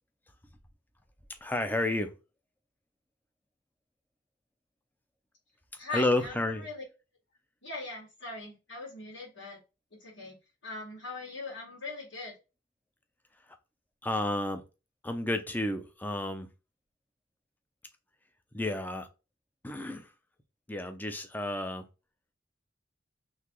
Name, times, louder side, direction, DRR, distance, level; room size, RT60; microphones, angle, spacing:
voice 1, 1.4-2.1 5.9-6.7 14.0-14.6 15.0-16.5 18.5-19.1 19.6-20.1 20.7-21.8, left 1 dB, 10° left, 0.5 m, -31 dB
voice 2, 5.8-6.8 7.6-9.6 10.0-10.4 10.6-12.3, left 3 dB, 80° left, 2.3 m, -40 dB
4.0 x 3.2 x 3.0 m
head